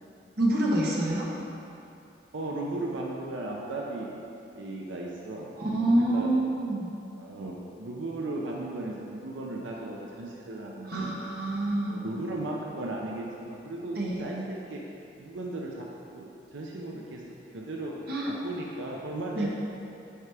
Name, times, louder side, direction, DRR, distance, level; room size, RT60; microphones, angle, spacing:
voice 1, 0.4-1.3 5.6-6.9 10.9-12.0 14.0-14.2 18.1-18.3 19.4-19.5, right 1 dB, 55° right, -3 dB, 1.1 m, -26 dB
voice 2, 2.3-4.1 4.5-5.5 5.9-6.3 7.1-11.1 11.8-14.8 15.2-15.9 16.1-17.2 17.5-17.9 18.3-19.5, right 2 dB, 90° right, -2 dB, 0.7 m, -36 dB
8.8 x 4.9 x 3.4 m, 2.8 s
head